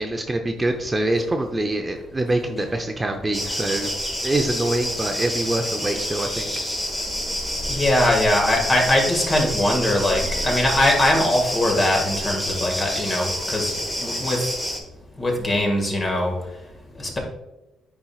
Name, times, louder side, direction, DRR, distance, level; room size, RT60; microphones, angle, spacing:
voice 1, 0.0-3.9 4.2-6.5, right 2 dB, 20° right, 4 dB, 0.6 m, -25 dB
sound 1, 3.3-14.8, equal, 15° left, 1.2 m, -28 dB
voice 2, 7.7-13.7 14.0-14.4 15.2-16.3 17.0-17.2, left 1 dB, 30° left, 1 dB, 1.8 m, -21 dB
9.4 x 4.4 x 2.4 m, 0.98 s
cardioid pair, 90°, 0 cm